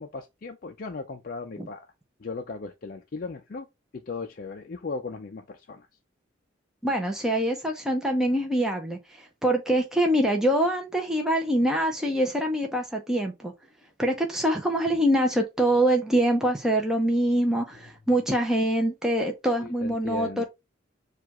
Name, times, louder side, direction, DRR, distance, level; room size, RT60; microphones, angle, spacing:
voice 1, 0.0-1.9 2.2-3.7 3.9-5.9 19.6-20.4, left 3 dB, 45° left, 0.4 m, -37 dB
voice 2, 6.8-13.5 14.0-20.4, right 1 dB, 5° right, 0.6 m, -24 dB
6.5 x 2.4 x 2.9 m
head